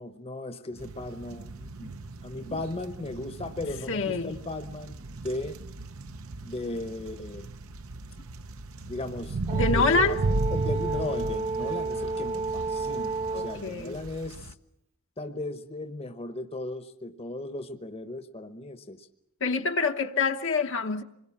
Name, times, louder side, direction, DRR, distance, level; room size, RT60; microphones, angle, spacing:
voice 1, 0.0-1.9 2.2-5.0 5.2-5.6 6.4-7.5 8.9-9.4 9.7-10.1 10.5-14.5 15.2-19.1, left 2 dB, 25° left, 1.0 m, -36 dB
sound 1, 0.8-14.5, right 2 dB, 65° right, 0.9 m, -35 dB
voice 2, 3.9-4.4 9.5-10.2 13.3-14.0 19.4-21.0, left 4 dB, 60° left, 1.1 m, -26 dB
Brass instrument, 9.5-13.7, right 3 dB, 30° right, 1.0 m, -31 dB
25.5 x 21.5 x 7.2 m
head